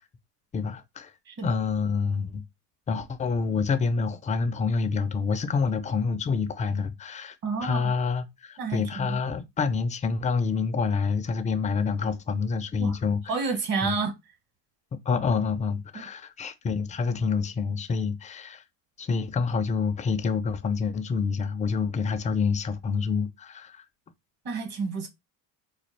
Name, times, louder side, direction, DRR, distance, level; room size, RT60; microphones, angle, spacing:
voice 1, 0.5-1.1 1.4-2.4 2.9-7.4 7.6-13.2 13.8-14.0 14.9-18.6 19.0-23.8, left 5 dB, 20° left, 0.3 m, -27 dB
voice 2, 1.3-1.6 7.4-7.9 8.6-9.2 12.8-13.0 13.3-14.1 15.9-16.1 24.4-25.1, right 4 dB, 45° right, 1.4 m, -30 dB
4.1 x 2.3 x 3.2 m
supercardioid pair, 100°, 47 cm